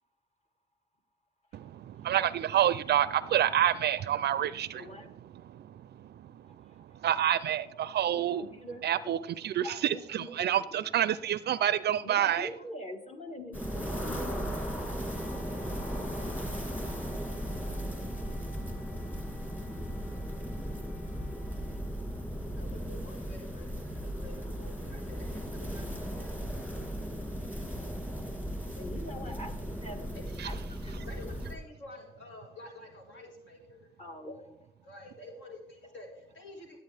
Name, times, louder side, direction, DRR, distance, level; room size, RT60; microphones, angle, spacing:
voice 1, 1.5-5.1 5.3-8.4 8.8-12.5 30.4-30.5, right 11 dB, 55° right, 0.4 m, -29 dB
voice 2, 4.7-5.1 8.1-8.8 9.6-10.6 11.1-11.2 11.6-11.7 12.0-14.5 28.7-29.5 29.8-30.0 30.4-30.6 30.8-31.0 34.0-34.4, left 1 dB, 30° left, 1.6 m, -43 dB
sound 1, 13.5-31.5, equal, 10° left, 2.4 m, -36 dB
Wind instrument woodwind instrument, 15.0-23.1, left 3 dB, 85° left, 2.4 m, -56 dB
voice 3, 22.5-26.3 30.1-30.2 31.1-33.8 34.8-36.8, left 2 dB, 70° left, 1.9 m, -49 dB
15.0 x 8.0 x 3.4 m
cardioid pair, 90°, 20 cm